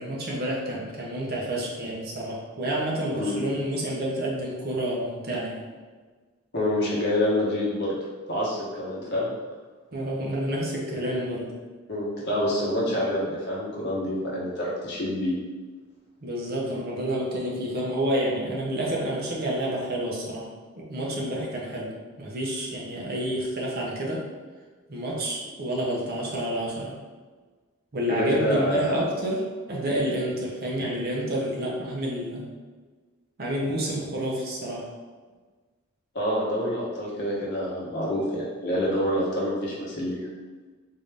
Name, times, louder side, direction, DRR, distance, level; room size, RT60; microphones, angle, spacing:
voice 1, 0.0-5.6 9.9-11.5 16.2-20.5 20.8-21.9 22.2-24.2 24.9-26.9 27.9-32.5 33.4-34.8, right 1 dB, 45° right, -3 dB, 0.7 m, -29 dB
voice 2, 6.5-7.9 8.3-9.3 11.9-15.3 28.1-29.1 36.1-40.3, left 1 dB, 55° left, -5 dB, 1.0 m, -27 dB
3.7 x 2.5 x 3.4 m, 1.4 s
head